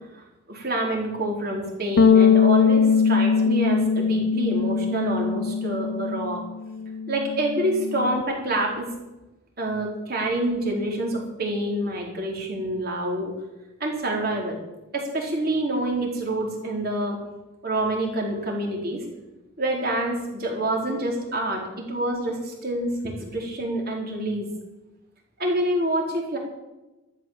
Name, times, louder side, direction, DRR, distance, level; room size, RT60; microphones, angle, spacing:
voice 1, 0.1-6.4 7.1-8.9 9.6-13.3 13.8-14.6 14.9-17.2 17.6-19.0 19.6-24.5 25.4-26.4, right 1 dB, 45° right, 0 dB, 4.6 m, -27 dB
Bass guitar, 2.0-8.2, left 6 dB, 55° left, 0.6 m, -21 dB
13.5 x 13.0 x 7.6 m, 1.0 s
head